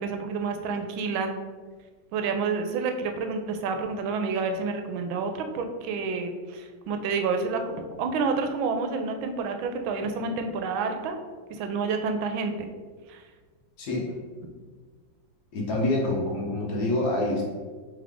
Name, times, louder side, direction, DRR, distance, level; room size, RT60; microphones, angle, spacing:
voice 1, 0.0-1.4 2.1-11.2 11.5-12.6 13.1-13.2, right 4 dB, 90° right, 5 dB, 1.4 m, -29 dB
voice 2, 13.8-14.2 15.5-17.5, left 2 dB, 60° left, -3 dB, 1.2 m, -26 dB
3.7 x 3.5 x 3.5 m, 1.5 s
omnidirectional pair, 2.1 m